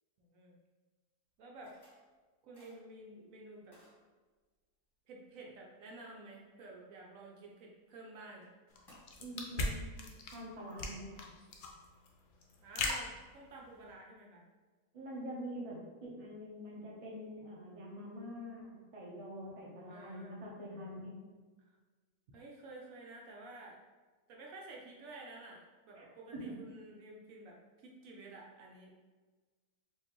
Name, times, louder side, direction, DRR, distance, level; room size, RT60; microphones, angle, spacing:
voice 1, 0.2-0.6 1.4-1.8 2.4-3.8 5.1-8.5 12.6-14.5 19.9-20.4 21.7-21.8 22.3-23.8 24.3-25.6 25.8-28.9, right 2 dB, 70° right, -2 dB, 1.0 m, -51 dB
sound 1, 1.6-2.1 2.5-2.8 3.7-4.0 7.9-8.0 8.4-8.5 8.9-9.0, left 1 dB, 15° left, 1.2 m, -60 dB
sound 2, 8.7-13.9, left 3 dB, 65° left, 0.7 m, -39 dB
voice 2, 9.2-9.8 10.3-11.2 14.9-21.1 26.0-26.1 26.3-26.6, equal, 30° right, -4 dB, 0.7 m, -45 dB
4.5 x 2.6 x 2.9 m, 1.3 s
omnidirectional pair, 1.5 m